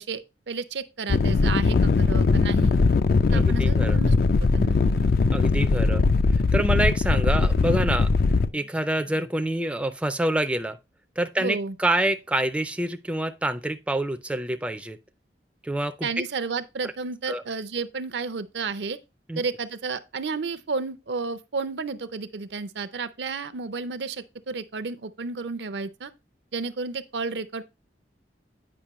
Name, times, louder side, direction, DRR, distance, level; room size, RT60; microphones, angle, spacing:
voice 1, 0.0-2.8 3.3-4.1 4.4-4.8 11.4-11.7 16.0-19.0 19.4-26.1 26.5-27.6, right 4 dB, 75° right, 0.6 m, -32 dB
sound 1, 1.1-8.5, left 4 dB, 55° left, 0.4 m, -20 dB
voice 2, 3.3-4.0 5.3-6.0 6.3-8.1 8.5-10.8 11.2-15.0 15.6-16.1 17.3-17.4 19.3-19.4, right 1 dB, 5° right, 0.4 m, -27 dB
8.7 x 5.2 x 3.0 m
head